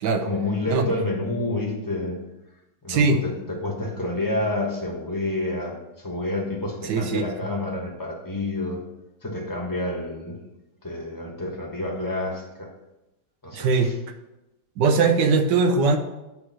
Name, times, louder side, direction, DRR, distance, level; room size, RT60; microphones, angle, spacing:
voice 1, 0.1-2.2 2.8-8.8 9.2-10.4 10.8-12.7 13.4-13.9 15.8-16.0, left 2 dB, 15° left, -1 dB, 1.1 m, -29 dB
voice 2, 2.9-3.2 6.9-7.2 13.5-13.9 14.8-16.0, right 4 dB, 85° right, 6 dB, 1.4 m, -20 dB
8.8 x 3.3 x 6.1 m, 0.96 s
omnidirectional pair, 1.8 m